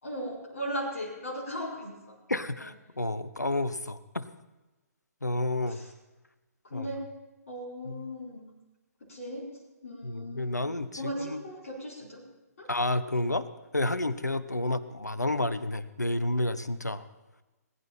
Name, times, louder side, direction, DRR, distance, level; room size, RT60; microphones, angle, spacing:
voice 1, 0.0-2.2 2.6-2.7 5.3-5.9 6.6-7.1 7.5-8.5 9.0-12.2 12.6-12.7, equal, 55° left, -4 dB, 4.4 m, -38 dB
voice 2, 2.3-4.3 5.2-5.8 6.7-6.9 7.9-8.1 10.0-11.4 12.7-13.5 13.7-17.0, left 2 dB, 90° left, 15 dB, 0.8 m, -30 dB
21.0 x 9.9 x 4.3 m, 1.1 s
figure-of-eight pair, 125°, 9 cm